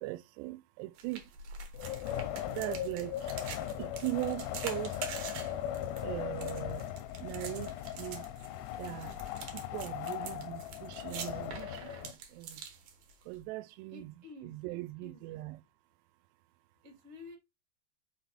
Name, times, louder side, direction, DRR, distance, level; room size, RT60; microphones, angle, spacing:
voice 1, 0.0-1.3 2.5-3.3 3.8-5.0 6.0-6.9 7.2-8.2 8.8-9.2 9.5-12.6 13.3-14.2 14.4-15.6, right 19 dB, 85° right, 2.7 m, -40 dB
sound 1, 1.0-13.4, right 6 dB, 65° right, 2.6 m, -46 dB
Wind, 1.7-12.1, left 11 dB, 85° left, 2.2 m, -39 dB
voice 2, 13.9-15.4 16.8-17.4, left 2 dB, 30° right, 1.3 m, -51 dB
6.2 x 4.0 x 4.1 m
omnidirectional pair, 4.8 m